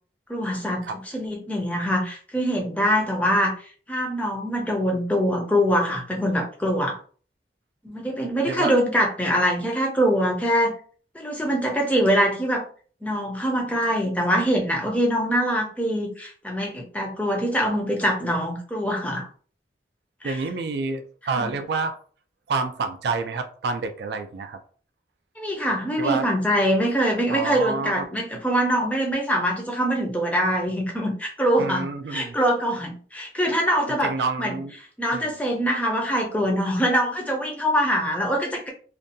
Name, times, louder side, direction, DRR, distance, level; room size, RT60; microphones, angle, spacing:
voice 1, 0.3-3.5 3.9-7.0 7.8-10.7 11.1-12.6 13.0-19.3 20.2-20.4 21.2-21.5 25.4-34.1 34.4-34.6 35.0-38.7, equal, 10° left, 1 dB, 0.5 m, -24 dB
voice 2, 20.2-22.0 22.5-24.6 26.0-26.3 27.3-28.0 31.6-32.3 34.0-34.7 35.1-35.3, right 4 dB, 70° right, 9 dB, 0.3 m, -28 dB
2.5 x 2.2 x 2.6 m, 0.43 s
head